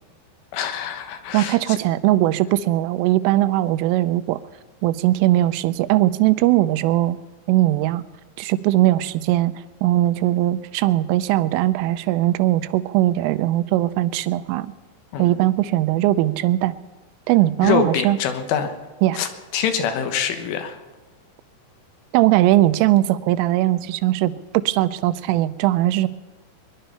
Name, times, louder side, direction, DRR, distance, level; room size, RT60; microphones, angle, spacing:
voice 1, 0.5-1.6 15.1-15.4 17.6-18.7 19.2-20.8, left 8 dB, 80° left, 7 dB, 3.7 m, -24 dB
voice 2, 1.3-4.4 4.8-7.2 7.5-8.0 8.4-9.5 9.8-14.7 15.2-16.8 17.3-18.2 19.0-19.2 22.1-26.1, right 15 dB, 90° right, 12 dB, 3.2 m, -19 dB
22.5 x 11.5 x 5.6 m, 1.2 s
omnidirectional pair, 5.6 m